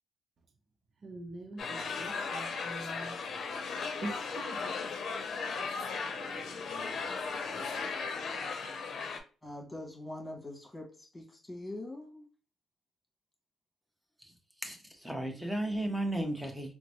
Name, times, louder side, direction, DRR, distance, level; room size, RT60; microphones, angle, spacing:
voice 1, 1.0-3.2 4.0-4.6, right 2 dB, 50° right, 0.7 m, -43 dB
sound 1, 1.6-9.2, left 4 dB, 60° left, 0.7 m, -36 dB
voice 2, 9.4-12.3, left 1 dB, 15° left, 1.7 m, -43 dB
voice 3, 14.2-16.7, right 1 dB, 5° right, 1.0 m, -35 dB
3.9 x 2.1 x 3.0 m
cardioid pair, 90°, 0 cm